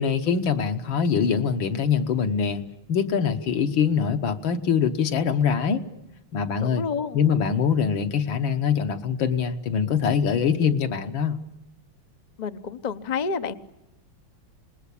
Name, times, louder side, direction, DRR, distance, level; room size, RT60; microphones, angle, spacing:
voice 1, 0.0-2.6 2.9-5.8 6.3-6.9 7.1-11.4, left 7 dB, 70° left, 7 dB, 2.0 m, -23 dB
voice 2, 6.6-7.2 12.4-13.5, left 5 dB, 50° left, 9 dB, 0.5 m, -29 dB
27.0 x 20.5 x 8.5 m, 0.92 s
omnidirectional pair, 2.2 m